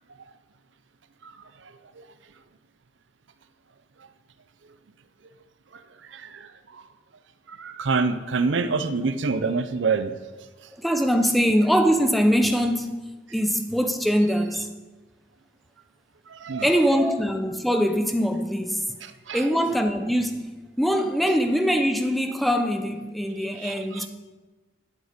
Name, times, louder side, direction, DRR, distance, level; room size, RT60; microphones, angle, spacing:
voice 1, 1.6-2.1 5.7-6.8 7.5-10.1 16.3-16.7 19.0-19.5 23.5-24.1, right 4 dB, 80° right, 11 dB, 0.6 m, -27 dB
voice 2, 10.8-14.7 16.6-19.0 19.3-24.1, equal, ahead, 6 dB, 0.7 m, -23 dB
12.0 x 8.0 x 5.1 m, 1.2 s
head